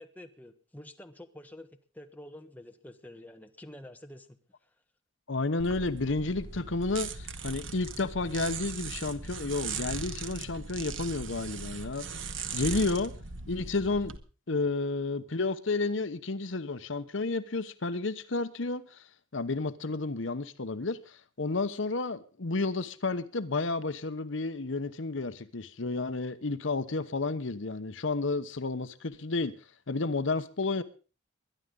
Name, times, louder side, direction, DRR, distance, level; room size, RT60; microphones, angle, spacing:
voice 1, 0.0-1.7 1.9-4.4, left 1 dB, 10° left, 1.3 m, -48 dB
voice 2, 5.3-12.2 12.5-13.1 13.5-14.1 14.5-19.0 19.3-29.5 29.9-30.8, left 3 dB, 65° left, 1.0 m, -31 dB
sound 1, 5.6-14.2, right 5 dB, 70° right, 1.4 m, -39 dB
22.5 x 11.0 x 3.8 m
head